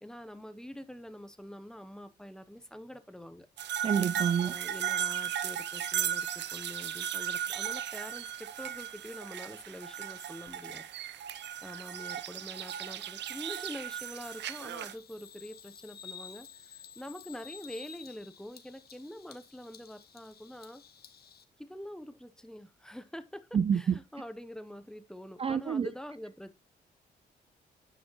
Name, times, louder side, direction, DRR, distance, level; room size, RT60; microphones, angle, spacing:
voice 1, 0.0-3.5 4.4-10.8 11.1-11.2 11.6-20.8 21.6-26.6, equal, 5° left, 0.8 m, -45 dB
sound 1, 3.6-14.9, right 10 dB, 75° right, 0.6 m, -36 dB
voice 2, 3.8-4.5 23.5-24.0 25.4-25.9, right 7 dB, 35° right, 0.4 m, -28 dB
Bird vocalization bird call bird song, 13.9-21.4, left 7 dB, 60° left, 1.1 m, -52 dB
9.5 x 5.1 x 3.0 m
cardioid pair, 80°, 18 cm